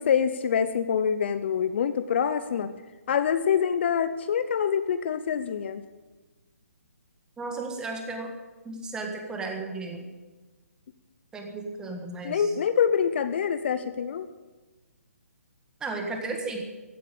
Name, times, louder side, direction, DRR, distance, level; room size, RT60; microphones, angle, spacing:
voice 1, 0.0-2.7 3.1-5.8 12.2-14.3, left 7 dB, 45° left, 12 dB, 0.8 m, -25 dB
voice 2, 7.4-8.3 8.7-10.0 11.3-12.5 15.8-16.6, right 3 dB, 10° right, 3 dB, 1.8 m, -34 dB
15.5 x 9.2 x 8.5 m, 1.2 s
hypercardioid pair, 150°, 8 cm